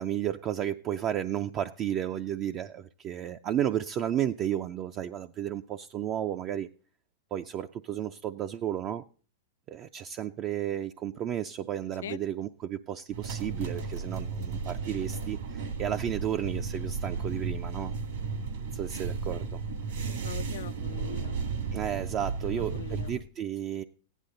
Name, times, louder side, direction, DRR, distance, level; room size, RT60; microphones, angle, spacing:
voice 1, 0.0-6.7 7.3-9.0 9.7-17.9 18.7-19.6 21.7-23.8, right 10 dB, 35° right, 0.5 m, -33 dB
sound 1, 13.1-23.2, right 5 dB, 70° right, 2.4 m, -34 dB
voice 2, 20.2-21.3 22.4-23.2, left 10 dB, 75° left, 0.4 m, -42 dB
15.0 x 10.0 x 3.8 m
hypercardioid pair, 120°, 0 cm